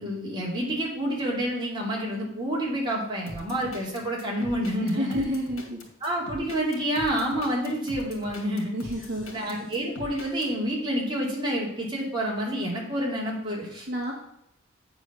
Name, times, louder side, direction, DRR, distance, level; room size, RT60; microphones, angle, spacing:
voice 1, 0.0-5.2 6.0-8.7 9.3-13.9, equal, 20° right, -4 dB, 2.7 m, -28 dB
sound 1, 3.3-10.5, left 1 dB, 85° left, 2.3 m, -42 dB
voice 2, 4.8-5.8 8.7-9.3 13.9-14.1, equal, 55° right, 0 dB, 1.2 m, -30 dB
8.9 x 4.6 x 6.7 m, 0.74 s
head